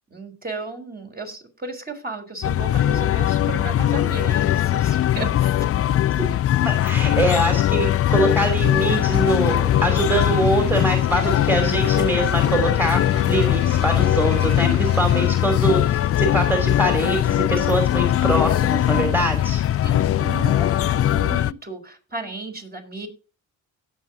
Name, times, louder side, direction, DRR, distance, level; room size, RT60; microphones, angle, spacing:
voice 1, 0.1-5.5 19.8-23.1, right 3 dB, 25° right, 1 dB, 4.0 m, -34 dB
sound 1, 2.4-21.5, left 12 dB, 40° left, 0.4 m, -20 dB
voice 2, 6.6-19.6, right 1 dB, 5° right, 4 dB, 2.9 m, -23 dB
sound 2, 8.2-15.2, right 2 dB, 65° right, 5.4 m, -36 dB
17.5 x 6.5 x 2.8 m, 0.35 s
supercardioid pair, 60°, 37 cm